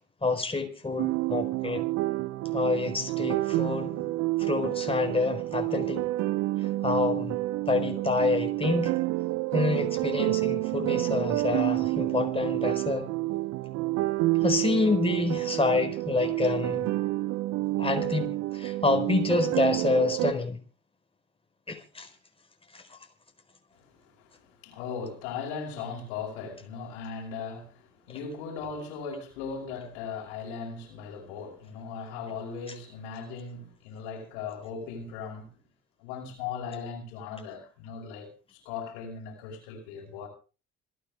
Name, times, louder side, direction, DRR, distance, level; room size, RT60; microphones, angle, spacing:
voice 1, 0.2-1.8 2.5-4.1 4.4-6.1 6.8-7.4 7.7-8.9 9.5-13.1 14.4-16.9 17.8-20.6 21.7-22.1 22.7-22.8, left 3 dB, 15° left, 4.3 m, -27 dB
sound 1, 1.0-20.3, right 18 dB, 55° right, 0.8 m, -29 dB
voice 2, 23.8-35.5 36.0-40.3, left 5 dB, 70° left, 5.2 m, -38 dB
27.0 x 9.6 x 3.5 m
hypercardioid pair, 55°, 33 cm